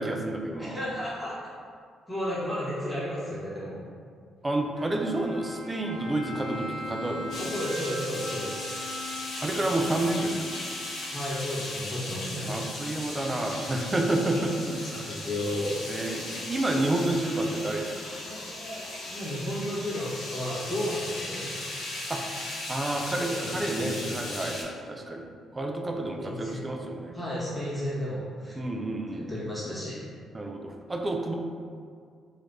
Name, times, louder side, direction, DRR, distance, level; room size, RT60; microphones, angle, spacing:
voice 1, 0.0-0.8 4.4-7.5 9.4-10.4 12.5-15.1 15.9-17.9 22.1-22.2 22.7-25.3 25.5-27.2 28.6-29.5 30.3-31.3, right 2 dB, 25° right, 2 dB, 0.4 m, -29 dB
voice 2, 0.6-1.4 2.1-3.8 7.3-8.7 11.1-12.6 14.8-15.8 19.1-21.5 23.2-24.1 26.2-26.6 27.1-28.5 29.1-30.0, equal, 10° left, -10 dB, 1.3 m, -33 dB
Bowed string instrument, 4.8-11.2, left 1 dB, 70° right, 0.5 m, -40 dB
sound 1, 7.3-24.6, left 2 dB, 75° left, 0.7 m, -37 dB
3.3 x 3.0 x 2.6 m, 2.2 s
supercardioid pair, 65°, 0 cm